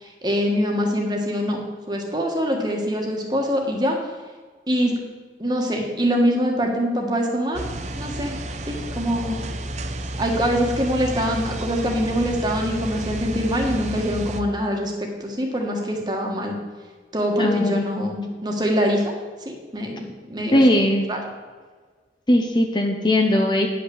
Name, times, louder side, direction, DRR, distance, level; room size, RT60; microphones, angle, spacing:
voice 1, 0.0-4.0 4.7-4.9 5.4-7.6 7.9-8.4 8.7-9.4 10.2-14.9 15.2-16.6 17.1-19.0 19.4-20.6 21.1-21.2, equal, 25° right, 1 dB, 1.4 m, -24 dB
sound 1, 7.5-14.4, right 1 dB, 40° right, 0.6 m, -31 dB
voice 2, 17.4-18.2 20.5-21.0 22.3-23.7, left 1 dB, 25° left, 3 dB, 0.7 m, -19 dB
9.7 x 5.9 x 7.1 m, 1.5 s
head